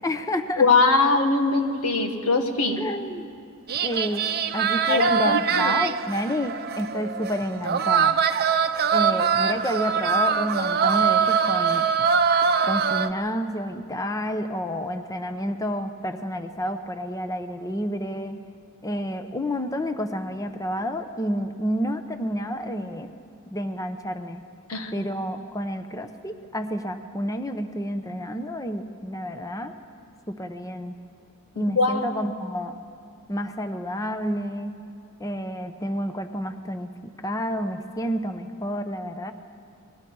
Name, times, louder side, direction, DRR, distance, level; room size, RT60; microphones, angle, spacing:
voice 1, 0.0-0.7 2.8-3.3 3.8-4.3 4.5-8.2 8.9-11.9 12.6-18.4 18.8-23.1 23.5-24.4 24.9-29.7 30.3-30.9 31.5-32.7 33.3-34.8 35.2-39.3, equal, 15° left, 8 dB, 0.8 m, -29 dB
voice 2, 0.6-2.8 4.9-5.7 24.7-25.1 31.6-32.1, left 3 dB, 85° left, 5 dB, 1.8 m, -22 dB
sound 1, 3.7-13.1, right 6 dB, 45° right, 0.7 m, -23 dB
29.5 x 21.0 x 4.7 m, 2.4 s
head